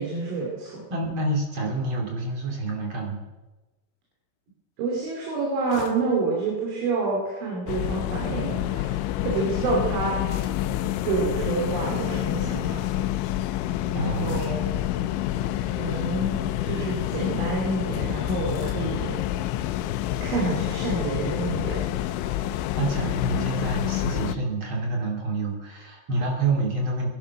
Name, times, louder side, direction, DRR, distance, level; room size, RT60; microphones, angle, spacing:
voice 1, 0.0-0.8 4.8-10.2 11.0-12.8 13.9-14.8 15.6-19.2 20.2-21.8 22.2-22.3, right 3 dB, 70° right, -2 dB, 5.4 m, -28 dB
voice 2, 0.9-3.2 13.9-14.5 22.8-27.1, right 2 dB, 35° right, 0 dB, 2.6 m, -28 dB
sound 1, 5.7-6.1 7.8-8.2 10.2-10.8 11.3-11.6 14.2-14.7 16.0-16.4 18.4-19.0, left 5 dB, 60° left, 2.0 m, -43 dB
sound 2, 7.7-24.4, left 13 dB, 80° left, 2.9 m, -28 dB
21.5 x 11.0 x 6.0 m, 1.2 s
omnidirectional pair, 5.7 m